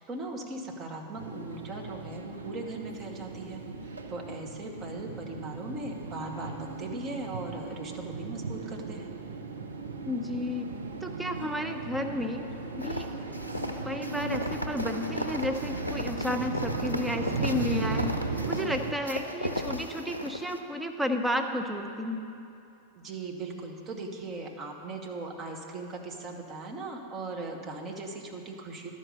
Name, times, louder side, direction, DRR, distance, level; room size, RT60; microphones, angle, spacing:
voice 1, 0.0-3.6 4.1-9.1 22.9-28.9, right 2 dB, 30° right, 1 dB, 1.2 m, -39 dB
sound 1, 1.2-18.9, right 3 dB, 70° right, 0.6 m, -37 dB
voice 2, 10.1-10.7 11.0-12.4 12.8-13.1 13.8-18.1 18.5-22.3, left 1 dB, 5° right, 4 dB, 0.6 m, -32 dB
sound 2, 12.8-20.6, left 1 dB, 85° left, 0.6 m, -35 dB
12.0 x 5.3 x 6.7 m, 2.7 s
figure-of-eight pair, 90°, 0 cm